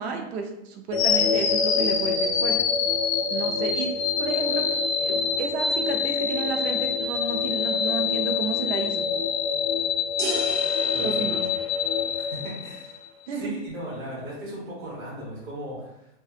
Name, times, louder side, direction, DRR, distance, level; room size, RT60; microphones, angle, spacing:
voice 1, 0.0-2.8 3.3-3.9 4.2-4.6 5.0-9.1 11.0-11.4 13.3-13.5, right 5 dB, 75° right, 3 dB, 0.6 m, -32 dB
sound 1, 0.9-13.1, left 6 dB, 70° left, 0.5 m, -25 dB
sound 2, 10.2-12.2, right 3 dB, 90° right, 1.0 m, -35 dB
voice 2, 10.9-11.4 12.2-13.0 13.3-16.1, right 1 dB, 15° right, -6 dB, 0.3 m, -37 dB
2.4 x 2.3 x 2.7 m, 0.84 s
supercardioid pair, 165°, 32 cm